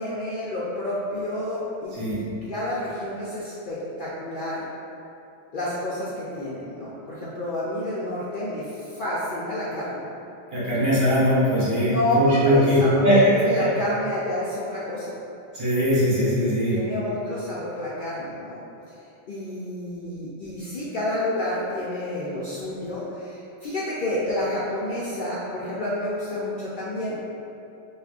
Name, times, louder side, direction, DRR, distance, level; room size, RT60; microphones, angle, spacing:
voice 1, 0.0-2.2 2.5-4.7 5.5-10.0 11.8-13.1 13.3-15.1 16.7-18.6 19.3-27.2, left 1 dB, 60° left, -8 dB, 0.6 m, -29 dB
voice 2, 10.5-12.8 13.0-13.2 13.6-13.7 15.5-16.8, equal, 45° right, -10 dB, 1.1 m, -21 dB
4.7 x 2.4 x 2.4 m, 2.8 s
omnidirectional pair, 1.2 m